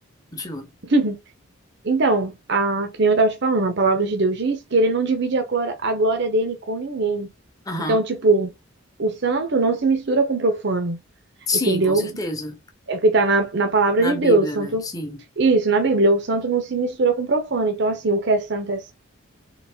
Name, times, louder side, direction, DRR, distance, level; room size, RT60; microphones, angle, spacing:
voice 1, 0.3-0.7 7.7-8.1 11.5-12.6 14.0-15.2, left 2 dB, 15° left, 1.0 m, -28 dB
voice 2, 0.8-1.2 1.8-7.3 7.9-8.5 9.0-11.0 11.7-12.1 12.9-14.9 15.4-18.9, right 3 dB, 55° right, 0.8 m, -21 dB
4.0 x 3.2 x 3.5 m
head